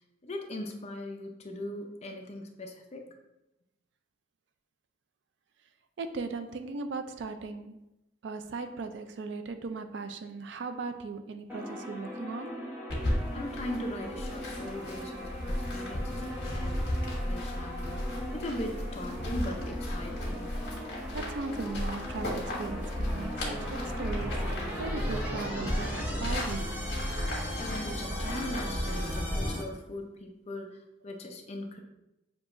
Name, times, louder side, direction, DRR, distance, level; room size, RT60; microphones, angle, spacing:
voice 1, 0.2-3.0 13.3-16.7 17.2-20.5 27.6-31.8, left 1 dB, 35° left, 3 dB, 0.5 m, -39 dB
voice 2, 6.0-7.8 8.2-12.6 21.1-26.8, right 4 dB, 65° right, 8 dB, 0.4 m, -38 dB
sound 1, 11.5-29.6, equal, 10° right, 0.8 m, -38 dB
sound 2, 12.9-29.5, left 1 dB, 60° left, 1.5 m, -35 dB
6.9 x 2.8 x 2.5 m, 0.92 s
head